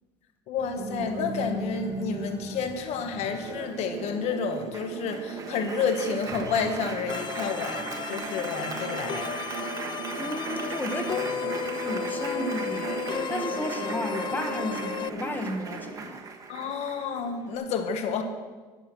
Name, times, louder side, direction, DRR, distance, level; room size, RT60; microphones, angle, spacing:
voice 1, 0.5-9.4 16.5-18.2, left 5 dB, 65° left, 6 dB, 1.4 m, -30 dB
Applause, 0.6-17.6, right 3 dB, 30° right, 1.5 m, -38 dB
sound 1, 3.5-15.9, right 5 dB, 85° right, 1.4 m, -38 dB
sound 2, 7.1-15.1, left 9 dB, 40° left, 0.4 m, -34 dB
voice 2, 10.2-11.3 11.6-16.2, left 1 dB, 15° left, 5 dB, 1.2 m, -33 dB
10.5 x 7.8 x 6.1 m, 1.3 s
supercardioid pair, 95°, 12 cm